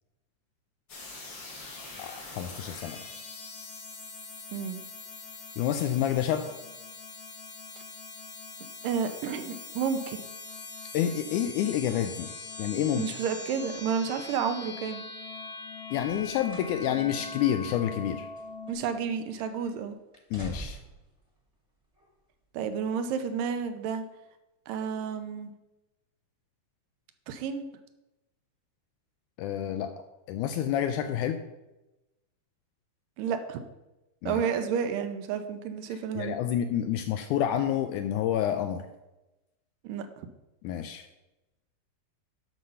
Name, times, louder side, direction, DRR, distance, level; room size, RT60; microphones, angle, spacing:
sound 1, 0.9-18.7, left 4 dB, 55° left, 1.1 m, -42 dB
voice 1, 2.0-3.2 5.6-6.5 10.9-12.3 12.6-13.1 15.9-18.3 20.3-20.8 29.4-29.9 30.3-31.4 34.2-34.4 35.9-38.9 40.6-41.1, left 10 dB, 80° left, 8 dB, 1.8 m, -29 dB
voice 2, 4.5-4.8 8.8-10.2 13.0-15.1 18.7-20.0 22.5-24.0 24.7-25.5 27.3-27.7 33.2-33.6 34.3-36.4 39.8-40.1, right 6 dB, 80° right, 9 dB, 2.3 m, -31 dB
sound 2, 16.1-16.8 17.2-17.3 18.0-19.1 19.4-19.7 20.1-21.1 21.9-22.1, right 1 dB, 15° right, 1.3 m, -45 dB
12.0 x 5.0 x 5.5 m, 1.0 s
omnidirectional pair, 4.0 m